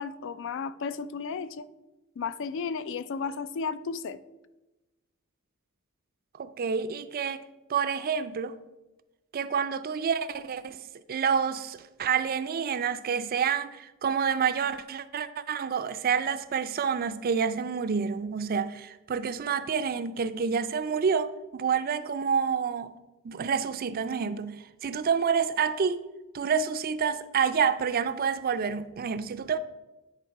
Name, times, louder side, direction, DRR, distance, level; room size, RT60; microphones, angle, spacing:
voice 1, 0.0-1.7 2.2-4.2, left 5 dB, 60° left, 0.3 m, -33 dB
voice 2, 6.4-7.4 7.7-8.5 9.3-10.8 11.1-22.9 23.2-26.0 26.3-29.6, right 6 dB, 45° right, 0.4 m, -28 dB
9.9 x 3.9 x 4.6 m
head